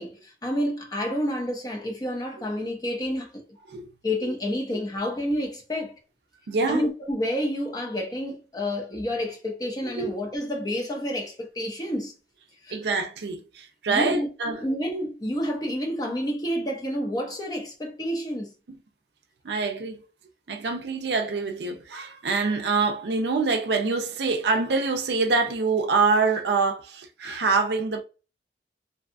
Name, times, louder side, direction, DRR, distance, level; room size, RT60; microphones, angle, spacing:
voice 1, 0.0-3.4 4.0-5.9 6.7-12.1 12.6-12.8 13.9-18.5, equal, 20° left, 0.6 m, -29 dB
voice 2, 6.5-6.9 9.8-10.1 12.7-14.7 18.7-18.8 19.4-20.0 20.5-28.0, right 4 dB, 70° right, 0.5 m, -25 dB
2.6 x 2.3 x 2.5 m
head